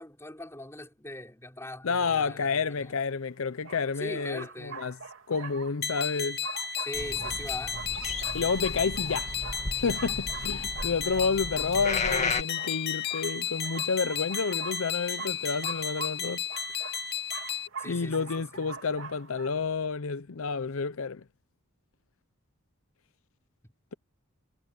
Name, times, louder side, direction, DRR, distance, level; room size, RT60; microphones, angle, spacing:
voice 1, 0.0-2.9 4.0-4.9 6.8-7.8 17.8-18.7, left 1 dB, 10° left, 4.9 m, -41 dB
voice 2, 1.8-5.0 5.3-6.4 8.3-9.3 9.8-16.4 17.9-21.2, left 5 dB, 75° left, 0.6 m, -30 dB
sound 1, 2.9-3.0 3.6-19.5, right 4 dB, 65° right, 3.2 m, -44 dB
sound 2, 5.8-17.7, left 7 dB, 50° left, 2.1 m, -33 dB
sound 3, 6.9-12.4, left 3 dB, 30° left, 1.8 m, -34 dB
head